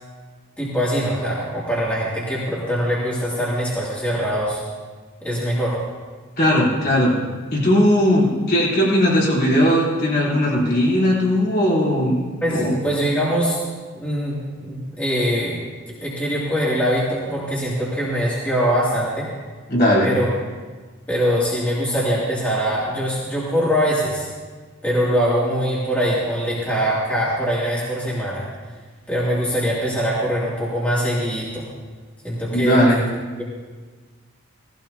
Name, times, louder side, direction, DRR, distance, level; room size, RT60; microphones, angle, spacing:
voice 1, 0.6-4.6 5.2-5.8 12.4-13.6 13.9-15.6 16.0-19.3 20.0-20.3 21.1-24.3 24.8-28.5 29.1-31.6 32.2-32.8, equal, 5° left, -8 dB, 2.7 m, -22 dB
voice 2, 6.4-7.2 7.5-12.2 12.5-12.8 19.7-20.1 32.5-33.0, equal, 45° left, -6 dB, 3.9 m, -18 dB
18.5 x 16.5 x 2.9 m, 1.4 s
head